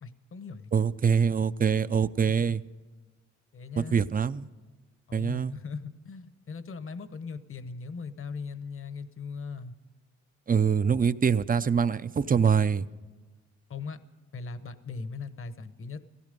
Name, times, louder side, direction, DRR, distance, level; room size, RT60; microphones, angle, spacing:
voice 1, 0.0-0.7 2.2-2.6 3.5-4.0 5.1-9.7 13.7-14.0 14.3-16.0, left 5 dB, 45° left, 12 dB, 1.1 m, -39 dB
voice 2, 0.7-2.6 3.8-4.5 5.1-5.5 10.5-12.8, right 6 dB, 30° right, 14 dB, 0.6 m, -24 dB
17.5 x 15.5 x 5.3 m, 1.2 s
cardioid pair, 100°, 30 cm